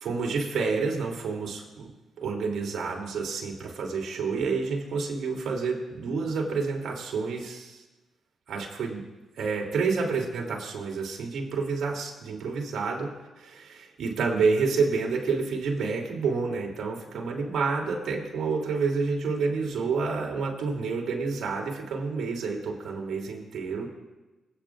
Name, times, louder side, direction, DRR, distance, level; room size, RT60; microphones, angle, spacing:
voice 1, 0.0-1.9 2.2-7.8 8.5-9.0 9.4-23.9, right 4 dB, 70° right, -1 dB, 2.9 m, -29 dB
25.5 x 9.0 x 2.5 m, 1.1 s
supercardioid pair, 50°, 0 cm